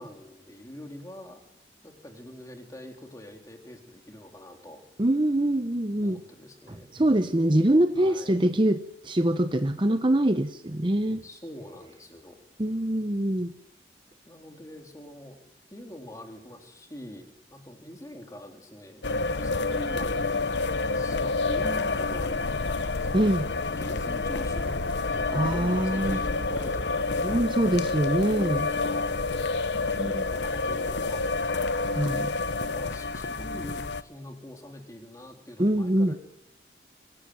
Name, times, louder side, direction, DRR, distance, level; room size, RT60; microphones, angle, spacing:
voice 1, 0.0-1.4 1.8-4.8 6.0-6.9 8.0-8.4 11.2-12.4 14.2-15.4 15.7-19.0 19.4-20.4 20.9-23.3 23.7-27.4 28.7-29.2 29.8-31.4 32.5-36.2, left 1 dB, 20° left, 3 dB, 3.4 m, -44 dB
voice 2, 5.0-6.2 6.7-11.3 12.6-13.5 23.1-23.5 25.3-26.2 27.2-28.7 29.9-30.3 31.9-32.3 35.6-36.2, right 1 dB, 30° right, 10 dB, 0.8 m, -24 dB
sound 1, 19.0-34.0, left 3 dB, 90° left, 1.0 m, -28 dB
25.0 x 16.5 x 9.5 m, 0.91 s
head